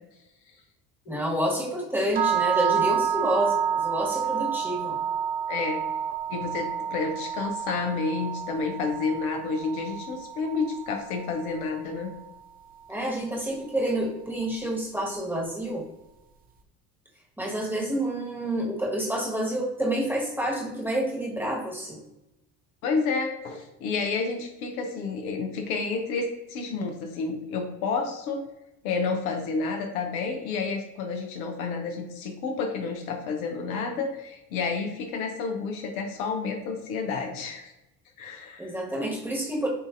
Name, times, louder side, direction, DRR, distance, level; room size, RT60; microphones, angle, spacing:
voice 1, 1.1-5.0 12.9-15.8 17.4-22.0 38.6-39.7, right 1 dB, 5° right, -2 dB, 1.3 m, -28 dB
sound 1, 2.1-12.2, right 8 dB, 20° right, 0.5 m, -29 dB
voice 2, 5.5-5.8 6.3-12.1 22.8-28.5 28.8-37.7 38.2-38.7, left 4 dB, 70° left, 3 dB, 0.8 m, -30 dB
6.7 x 2.6 x 2.5 m, 0.94 s
hypercardioid pair, 60°, 44 cm